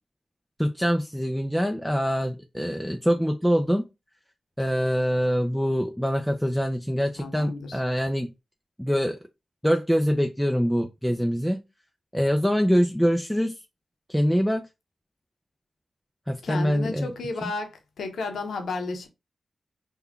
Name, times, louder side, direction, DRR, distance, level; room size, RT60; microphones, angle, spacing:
voice 1, 0.6-3.8 4.6-8.3 8.8-9.2 9.6-11.6 12.1-13.6 14.1-14.7 16.3-17.1, equal, 5° left, 0.4 m, -24 dB
voice 2, 7.2-7.8 16.4-19.1, left 3 dB, 85° left, 0.7 m, -33 dB
3.5 x 2.3 x 3.5 m
cardioid pair, 50°, 0 cm